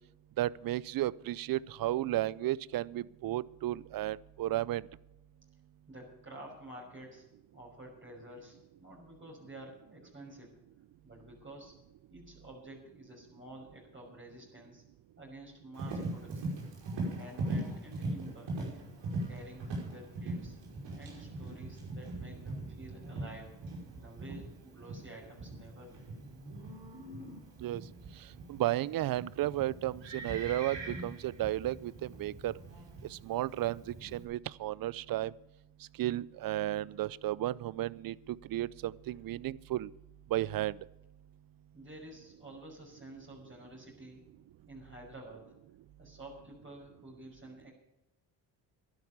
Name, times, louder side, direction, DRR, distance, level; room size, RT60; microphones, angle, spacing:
voice 1, 0.4-4.9 27.6-27.8 28.2-32.5 33.0-35.3 36.0-39.9 40.3-40.8, right 14 dB, 50° right, 23 dB, 0.6 m, -33 dB
voice 2, 5.9-7.2 7.5-10.5 11.0-11.8 12.1-14.8 15.2-16.6 17.1-18.7 19.3-20.6 20.9-23.6 23.9-26.1 39.1-39.2 41.7-44.2 44.7-45.6 46.0-47.7, right 1 dB, 25° right, -1 dB, 5.7 m, -50 dB
Livestock farm animals working animals, 15.7-34.2, right 2 dB, 65° right, 5.3 m, -41 dB
12.0 x 10.5 x 7.3 m, 0.93 s
supercardioid pair, 60°, 46 cm